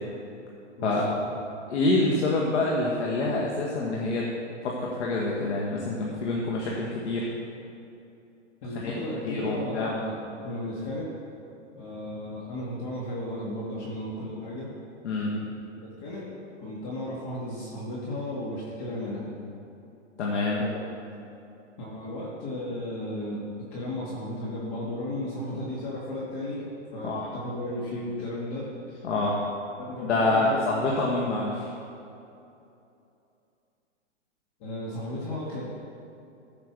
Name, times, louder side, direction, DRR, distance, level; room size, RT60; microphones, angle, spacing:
voice 1, 0.8-1.2 8.6-11.1 11.8-14.7 15.3-15.5 16.0-16.3 16.6-19.3 20.6-20.8 21.8-29.0 29.8-30.7 34.6-35.6, left 1 dB, 40° left, -6 dB, 2.5 m, -34 dB
voice 2, 1.7-4.3 4.6-7.3 8.8-8.9 9.2-9.9 15.0-15.3 20.2-20.6 27.0-27.3 29.0-29.4 30.0-31.7, left 2 dB, 65° left, -3 dB, 1.9 m, -26 dB
14.5 x 5.8 x 6.3 m, 2.8 s
hypercardioid pair, 150°, 36 cm